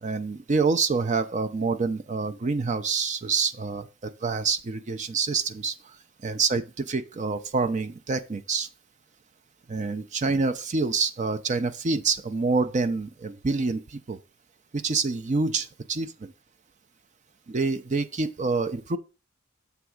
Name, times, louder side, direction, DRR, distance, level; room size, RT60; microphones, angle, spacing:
voice 1, 0.0-5.9 6.2-8.7 9.7-14.2 14.7-16.3 17.5-19.0, right 4 dB, 35° right, 0.5 m, -27 dB
7.0 x 3.4 x 6.2 m
head